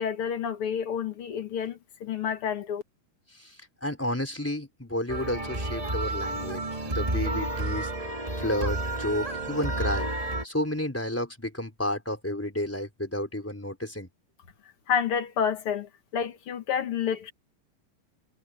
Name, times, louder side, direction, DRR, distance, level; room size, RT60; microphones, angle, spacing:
voice 1, 0.0-2.8 14.9-17.3, left 7 dB, 50° left, 2.1 m, -29 dB
voice 2, 3.8-7.9 8.4-10.1 10.4-14.1, left 1 dB, 5° left, 3.9 m, -31 dB
sound 1, 5.1-10.4, right 2 dB, 15° right, 1.8 m, -30 dB
omnidirectional pair, 3.7 m